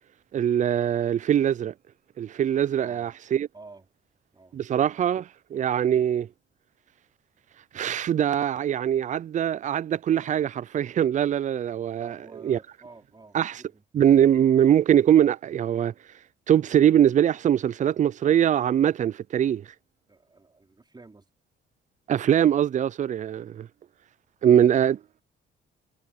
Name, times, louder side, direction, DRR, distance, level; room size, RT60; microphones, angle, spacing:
voice 1, 0.3-1.7 2.2-3.5 4.5-6.3 7.7-12.2 12.4-12.6 13.3-13.6 13.9-15.9 16.5-19.7 22.1-23.7 24.4-25.2, right 10 dB, 40° right, 0.4 m, -22 dB
voice 2, 2.8-3.1 3.5-3.8 4.3-4.6 12.0-13.8 20.1-21.3, right 3 dB, 20° right, 4.2 m, -49 dB
cardioid pair, 90°, 20 cm